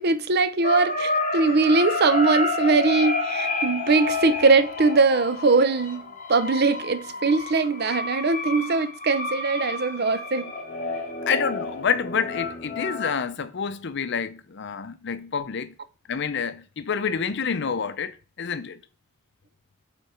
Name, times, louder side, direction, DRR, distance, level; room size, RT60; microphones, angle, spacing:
voice 1, 0.0-10.5, right 3 dB, 55° right, 0.7 m, -21 dB
sound 1, 0.6-13.1, left 3 dB, 40° left, 1.1 m, -30 dB
voice 2, 11.3-15.7 16.1-18.8, left 6 dB, 60° left, 0.6 m, -28 dB
8.3 x 4.0 x 4.4 m
head